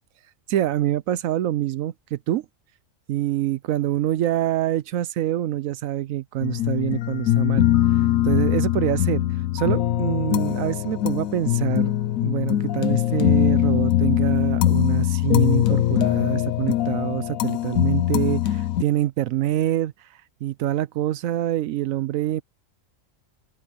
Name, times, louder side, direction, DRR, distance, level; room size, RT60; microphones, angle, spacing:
voice 1, 0.5-2.5 3.1-9.2 9.5-11.9 12.2-22.4, right 13 dB, 85° right, 1.0 m, -25 dB
sound 1, 6.4-18.8, left 13 dB, 85° left, 1.2 m, -22 dB
open air
omnidirectional pair, 1.4 m